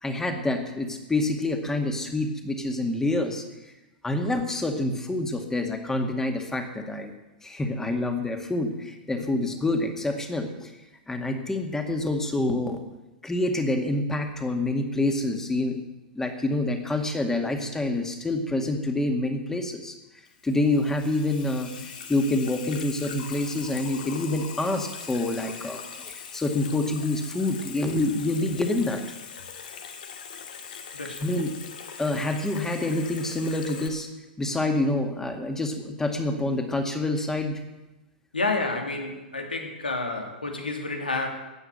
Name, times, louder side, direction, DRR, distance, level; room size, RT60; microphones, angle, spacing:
voice 1, 0.0-3.5 4.0-7.1 7.4-10.7 11.1-12.8 13.2-15.8 16.2-19.9 20.4-21.7 22.1-29.0 31.2-31.5 32.0-34.1 34.4-37.6, left 2 dB, 10° left, 4 dB, 2.1 m, -27 dB
Water tap faucet / Sink (filling or washing), 20.3-33.9, left 6 dB, 70° left, 2.2 m, -41 dB
voice 2, 30.9-31.3 38.3-41.3, left 3 dB, 90° left, 3 dB, 2.6 m, -30 dB
15.5 x 9.8 x 6.7 m, 1.1 s
hypercardioid pair, 105°, 5 cm